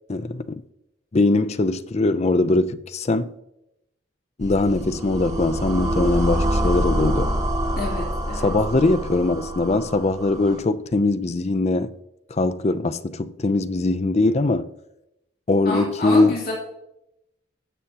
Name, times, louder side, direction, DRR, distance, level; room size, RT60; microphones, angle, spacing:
voice 1, 0.1-0.6 1.1-3.3 4.4-7.3 8.4-11.9 12.3-14.7 15.5-16.4, left 2 dB, 35° left, 0.5 m, -21 dB
sound 1, 4.4-10.6, equal, 40° right, 1.9 m, -26 dB
voice 2, 7.8-8.5 15.6-16.5, left 2 dB, 50° left, 3.1 m, -25 dB
19.0 x 7.3 x 2.9 m
head